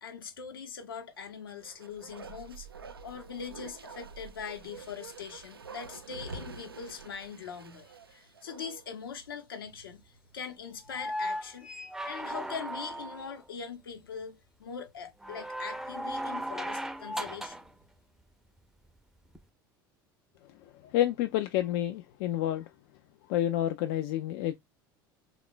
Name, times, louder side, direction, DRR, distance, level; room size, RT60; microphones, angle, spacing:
voice 1, 0.0-2.7 3.0-11.7 12.0-17.6, left 6 dB, 75° left, 0.9 m, -42 dB
Bark, 1.4-9.0 9.3-9.4, right 4 dB, 85° right, 0.4 m, -47 dB
sound 1, 10.9-13.4 15.2-17.7 19.3-19.4, equal, 5° right, 0.5 m, -37 dB
voice 2, 20.8-22.7 23.3-24.6, left 12 dB, 60° left, 0.4 m, -29 dB
3.7 x 2.4 x 3.6 m
figure-of-eight pair, 70°, 12 cm